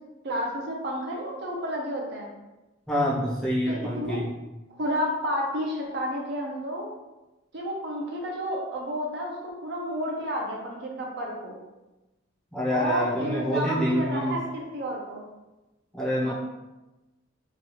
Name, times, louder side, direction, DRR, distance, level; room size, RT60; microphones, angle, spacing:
voice 1, 0.2-2.3 3.7-4.2 4.8-6.9 7.5-11.6 12.7-15.2 16.2-16.3, equal, 55° right, -1 dB, 0.6 m, -31 dB
voice 2, 2.9-4.3 12.5-14.4 15.9-16.3, equal, 5° left, -7 dB, 0.6 m, -26 dB
3.0 x 2.3 x 2.9 m, 1.0 s
head